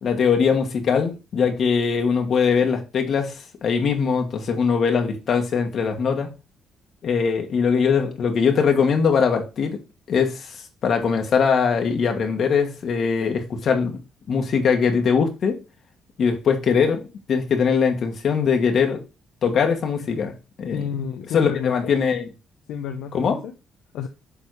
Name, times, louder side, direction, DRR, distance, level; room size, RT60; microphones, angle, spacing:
voice 1, 0.0-6.3 7.0-9.8 10.1-14.0 14.3-15.6 16.2-19.0 19.4-20.3 20.6-20.8 21.3-22.3 23.1-23.4, left 6 dB, 60° left, 1.3 m, -21 dB
voice 2, 20.7-21.9 22.7-23.5 23.9-24.1, left 7 dB, 85° left, 0.6 m, -31 dB
7.0 x 3.5 x 4.7 m
cardioid pair, 90°, 0 cm